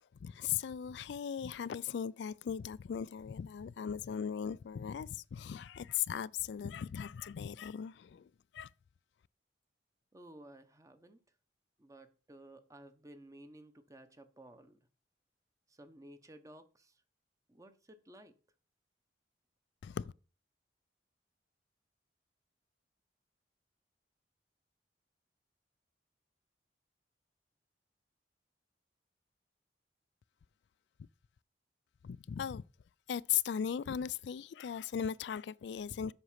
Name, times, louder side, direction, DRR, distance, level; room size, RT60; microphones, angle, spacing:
voice 1, 0.2-8.7 19.8-20.1 32.0-32.6 33.1-36.1, left 8 dB, 70° left, 0.3 m, -38 dB
voice 2, 10.1-11.2 11.8-14.8 15.7-17.0 17.5-18.3, right 1 dB, 20° right, 0.9 m, -55 dB
8.0 x 5.9 x 5.7 m
head